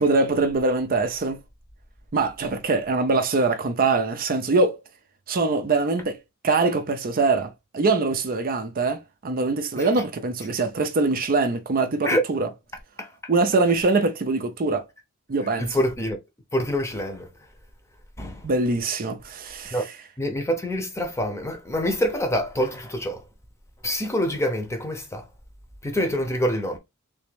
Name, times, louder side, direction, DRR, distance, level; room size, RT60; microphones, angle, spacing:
voice 1, 0.0-1.4 2.1-4.8 5.3-6.2 6.4-12.5 13.3-14.8 15.3-15.8 18.4-19.9, right 3 dB, 45° right, 0.5 m, -23 dB
voice 2, 15.6-16.2 16.5-17.3 18.2-18.5 19.7-19.8 20.2-23.2 23.8-25.2 25.8-26.8, equal, 15° left, 0.8 m, -26 dB
3.4 x 3.0 x 3.3 m
head